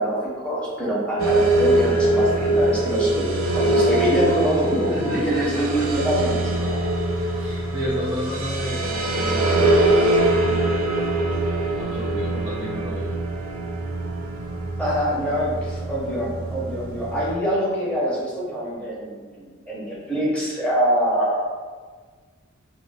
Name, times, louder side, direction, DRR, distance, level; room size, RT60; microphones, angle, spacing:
voice 1, 0.0-6.8 14.8-21.4, equal, 5° left, -7 dB, 0.8 m, -25 dB
sound 1, 1.2-17.4, right 1 dB, 80° right, 0.5 m, -23 dB
voice 2, 4.9-5.9 7.3-11.4 11.8-13.2, equal, 10° right, -9 dB, 0.4 m, -33 dB
2.6 x 2.1 x 3.8 m, 1.5 s
head